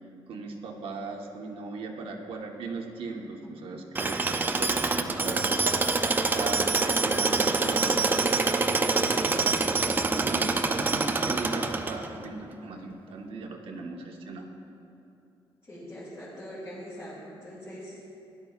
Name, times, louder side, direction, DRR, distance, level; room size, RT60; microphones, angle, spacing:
voice 1, 0.3-5.6 6.1-9.6 10.1-14.5, right 3 dB, 80° right, 1 dB, 1.2 m, -38 dB
Tools, 4.0-12.3, right 3 dB, 20° right, 0.4 m, -26 dB
voice 2, 15.6-18.0, equal, 30° left, -10 dB, 2.6 m, -42 dB
16.5 x 11.5 x 2.4 m, 2.7 s
wide cardioid pair, 170°, 9 cm